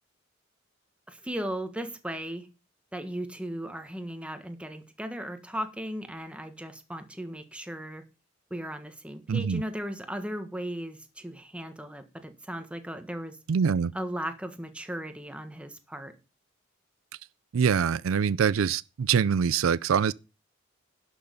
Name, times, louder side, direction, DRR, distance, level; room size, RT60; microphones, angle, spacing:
voice 1, 1.1-2.5 2.9-8.0 8.5-13.4 13.9-16.1, right 1 dB, 5° right, 1.4 m, -36 dB
voice 2, 9.3-9.6 13.5-13.9 17.5-20.1, right 7 dB, 85° right, 0.4 m, -24 dB
11.5 x 6.4 x 5.2 m
head